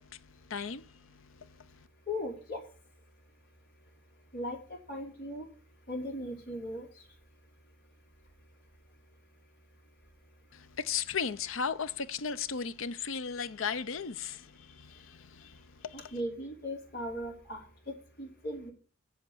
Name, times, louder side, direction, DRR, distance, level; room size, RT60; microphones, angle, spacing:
voice 1, 0.0-1.8 10.5-16.1, left 6 dB, 70° left, 0.8 m, -37 dB
voice 2, 2.1-2.6 4.3-5.5 5.9-6.9 15.9-18.7, left 1 dB, 45° left, 4.8 m, -38 dB
8.1 x 7.3 x 8.6 m
head